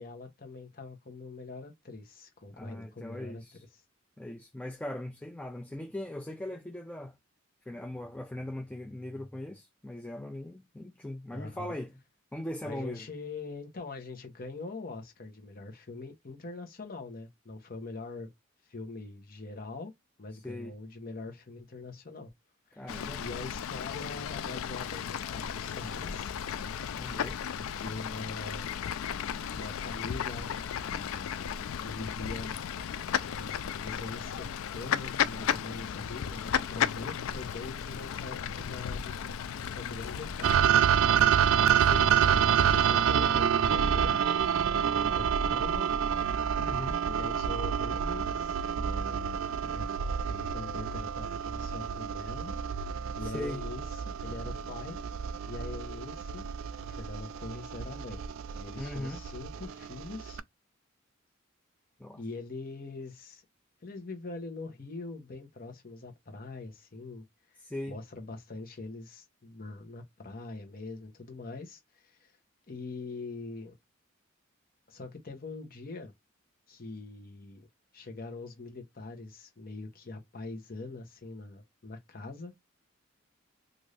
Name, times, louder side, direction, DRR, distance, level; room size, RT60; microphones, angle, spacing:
voice 1, 0.0-3.4 11.3-11.8 12.6-18.3 18.7-19.9 20.2-22.3 22.7-22.9 23.2-26.3 27.6-28.7 29.5-31.5 31.8-32.6 33.1-34.5 34.7-40.7 41.9-44.2 44.6-45.9 47.1-49.5 49.7-49.9 50.3-52.6 53.1-55.0 55.5-56.5 56.8-58.2 58.5-60.4 62.2-63.4 63.8-67.6 67.9-72.3 72.7-73.7 74.9-76.1 76.7-77.7 77.9-82.5, left 3 dB, 45° left, 0.9 m, -43 dB
voice 2, 2.5-3.6 4.2-7.1 7.7-12.0 12.3-13.1 20.3-20.7 22.8-23.2 27.0-27.4 41.8-42.4 46.6-47.0 53.2-53.6 58.8-59.2 62.0-62.2 67.6-68.0, left 1 dB, 5° left, 0.3 m, -40 dB
Fowl / Bird, 22.9-40.6, left 8 dB, 85° left, 0.3 m, -34 dB
sound 1, 40.4-60.4, right 8 dB, 75° right, 0.3 m, -28 dB
2.5 x 2.5 x 3.2 m
head